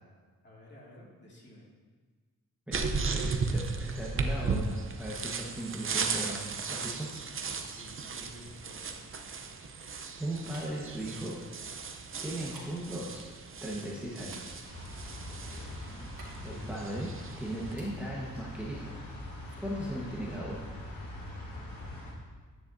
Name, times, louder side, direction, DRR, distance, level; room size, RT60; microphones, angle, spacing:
voice 1, 0.4-1.7 7.7-9.3 12.3-12.8 15.3-15.8, left 1 dB, 30° left, -4 dB, 2.3 m, -53 dB
voice 2, 2.7-7.1 10.2-11.4 12.2-13.3 13.6-14.6 15.5-15.7 16.4-18.9 19.6-20.6, right 1 dB, 5° right, -5 dB, 1.3 m, -38 dB
sound 1, 2.7-17.7, right 4 dB, 40° right, 0.7 m, -36 dB
sound 2, 3.6-6.2 7.1-13.8 14.2-17.2 17.5-19.2 19.5-20.8, right 2 dB, 90° right, 2.3 m, -58 dB
sound 3, 14.6-22.1, left 1 dB, 85° left, 2.7 m, -43 dB
10.0 x 8.9 x 2.7 m, 1.5 s
wide cardioid pair, 115°, 34 cm